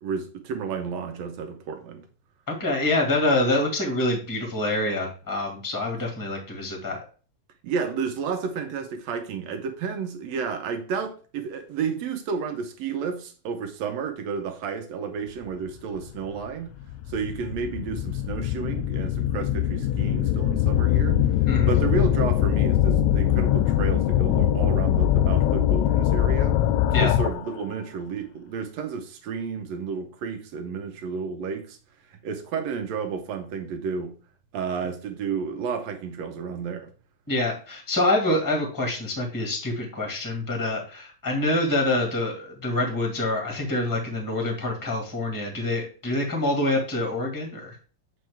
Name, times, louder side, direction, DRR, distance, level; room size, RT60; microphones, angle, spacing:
voice 1, 0.0-2.1 7.6-16.8 17.1-21.2 21.6-26.6 27.0-31.8 32.1-34.1 34.5-36.9, right 6 dB, 70° right, 2.2 m, -31 dB
voice 2, 2.5-7.0 21.5-21.7 26.9-27.1 37.3-47.8, left 2 dB, 10° left, 1.6 m, -26 dB
sound 1, 16.1-16.2 16.9-27.5, left 11 dB, 90° left, 2.0 m, -22 dB
7.6 x 4.7 x 3.5 m
omnidirectional pair, 3.3 m